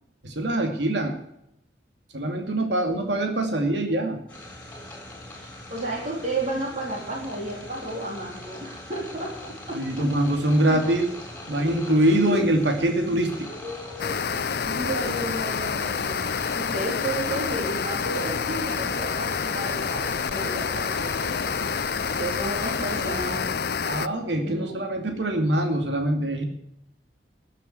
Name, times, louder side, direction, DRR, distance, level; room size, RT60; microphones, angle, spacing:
voice 1, 0.2-1.2 2.1-4.2 9.7-11.1 11.5-13.5 23.8-26.4, right 1 dB, 75° right, 4 dB, 2.5 m, -24 dB
sound 1, 4.3-23.4, left 1 dB, 10° left, 4.1 m, -41 dB
voice 2, 5.3-10.1 11.5-12.5 13.5-16.2 16.6-21.7 22.2-23.6 24.4-24.8, right 1 dB, 40° right, -2 dB, 3.8 m, -33 dB
sound 2, 14.0-24.1, left 6 dB, 55° left, 0.5 m, -28 dB
14.0 x 7.6 x 8.0 m, 0.78 s
head